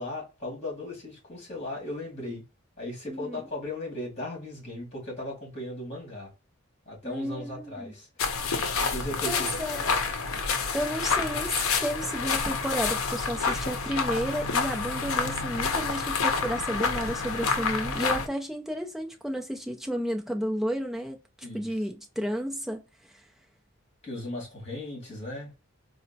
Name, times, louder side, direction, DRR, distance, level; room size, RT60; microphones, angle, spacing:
voice 1, 0.0-2.4 2.8-6.3 6.9-8.1 8.8-9.5 9.8-9.9 21.4-21.7 24.0-25.5, left 1 dB, 30° left, 1.8 m, -37 dB
voice 2, 3.1-3.5 7.0-7.9 9.3-9.9 10.7-22.8, equal, ahead, 0.4 m, -32 dB
sound 1, 8.2-18.3, left 5 dB, 80° left, 0.6 m, -28 dB
4.1 x 2.0 x 2.7 m
head